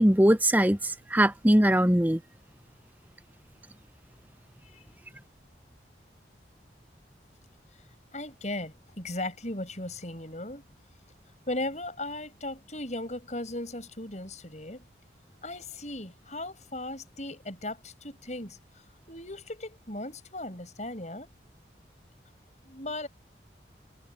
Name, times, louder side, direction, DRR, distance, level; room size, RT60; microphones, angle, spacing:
voice 1, 0.0-2.2, right 1 dB, 10° right, 0.7 m, -21 dB
voice 2, 8.1-10.6 11.5-14.8 15.4-18.6 19.1-21.3 22.6-23.1, left 1 dB, 40° left, 7.2 m, -37 dB
head